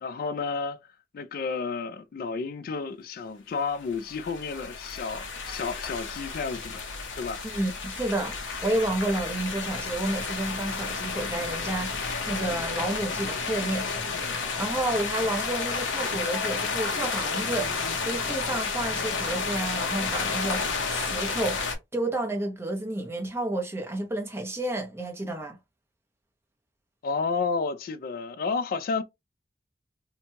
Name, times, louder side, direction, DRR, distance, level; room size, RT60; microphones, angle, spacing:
voice 1, 0.0-0.8 1.1-6.8 7.2-7.5 27.0-29.0, left 4 dB, 50° left, 0.3 m, -31 dB
sound 1, 3.8-21.8, left 4 dB, 85° left, 0.7 m, -31 dB
voice 2, 7.4-8.4 8.6-13.9 14.6-25.6, right 1 dB, 15° right, 0.7 m, -30 dB
2.8 x 2.2 x 2.7 m
head